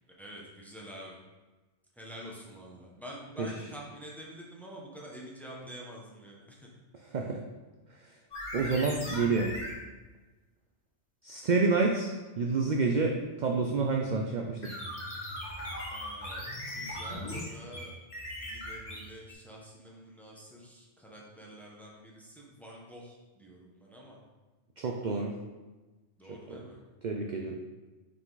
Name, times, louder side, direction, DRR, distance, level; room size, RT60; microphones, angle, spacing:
voice 1, 0.2-1.2 1.9-6.7 15.9-18.0 18.4-24.2 26.2-26.8, equal, ahead, -3 dB, 1.0 m, -47 dB
voice 2, 7.1-7.4 8.5-9.5 11.2-14.8 24.8-25.3 26.3-26.6 27.0-27.6, right 4 dB, 50° right, 1 dB, 0.5 m, -29 dB
sound 1, 8.3-9.8 14.6-19.3, left 1 dB, 35° left, 1.3 m, -39 dB
5.9 x 4.8 x 4.0 m, 1.2 s
omnidirectional pair, 1.2 m